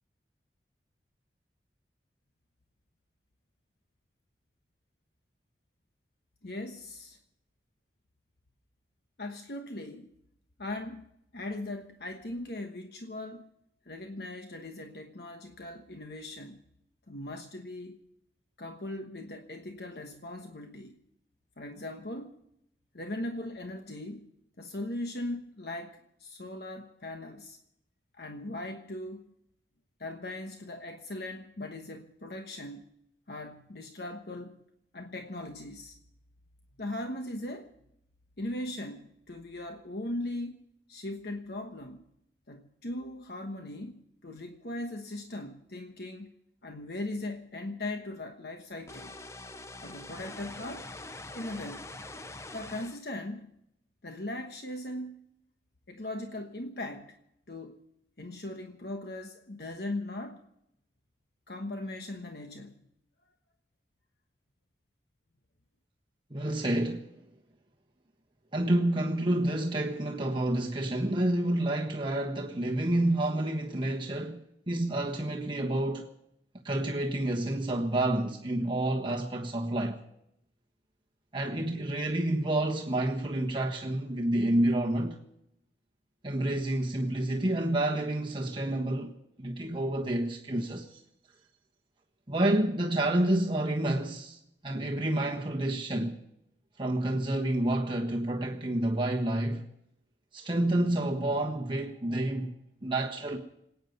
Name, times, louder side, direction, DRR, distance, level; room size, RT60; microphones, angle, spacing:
voice 1, 6.4-7.2 9.2-10.1 10.6-13.5 13.8-16.6 17.1-18.0 18.6-21.0 21.6-22.4 22.9-24.3 24.6-27.6 28.1-29.3 30.0-32.8 33.3-34.6 34.9-36.0 36.8-37.7 38.4-40.6 40.9-42.0 42.5-46.3 46.6-49.1 49.8-50.9 51.3-51.8 52.5-53.5 54.0-55.2 55.9-57.2 57.5-57.8 58.2-60.4 61.5-62.9, left 1 dB, 60° left, 1.2 m, -39 dB
sound 1, 48.9-53.0, left 2 dB, 15° left, 0.6 m, -44 dB
voice 2, 66.3-67.1 68.5-74.4 74.7-76.1 76.6-80.0 81.3-85.2 86.2-89.1 89.4-91.0 92.3-96.2 96.8-99.7 100.3-102.5 102.8-103.4, right 1 dB, 25° right, 1.4 m, -29 dB
27.0 x 9.5 x 5.4 m
head